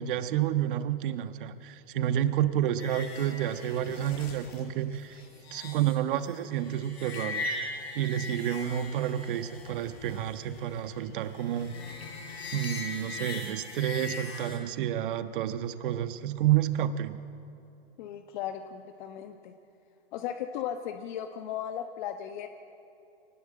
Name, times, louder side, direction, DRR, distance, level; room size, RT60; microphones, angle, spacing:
voice 1, 0.0-5.2 5.5-7.4 7.9-11.8 12.5-17.2, right 11 dB, 55° right, 10 dB, 1.4 m, -30 dB
sound 1, 2.8-14.6, left 3 dB, 80° left, 7.5 m, -40 dB
voice 2, 18.0-19.5 20.1-22.5, left 9 dB, 50° left, 6 dB, 1.2 m, -36 dB
24.0 x 19.5 x 7.7 m, 2.7 s
hypercardioid pair, 130°, 31 cm